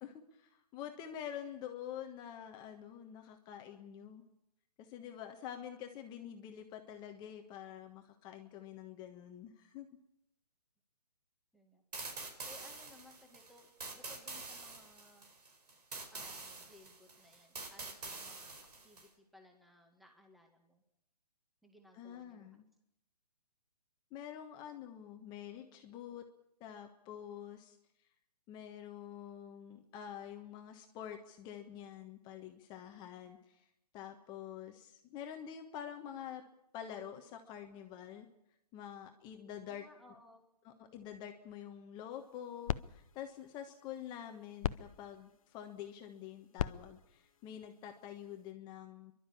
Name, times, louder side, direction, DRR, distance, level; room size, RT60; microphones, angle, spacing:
voice 1, 0.0-4.2 4.8-9.9 21.9-22.6 24.1-26.2 26.6-27.8 28.5-33.6 33.9-36.4 36.7-38.3 38.7-39.8 40.6-49.1, left 9 dB, 20° left, 5 dB, 1.4 m, -47 dB
voice 2, 11.5-11.8 12.5-15.3 16.1-20.8 21.6-22.5 34.3-34.4 39.6-40.4, left 1 dB, ahead, 4 dB, 1.9 m, -61 dB
sound 1, 11.9-19.1, right 3 dB, 80° right, 4.9 m, -46 dB
sound 2, 42.1-48.5, left 9 dB, 60° left, 0.8 m, -43 dB
30.0 x 12.0 x 8.5 m, 0.79 s
hypercardioid pair, 145°, 20 cm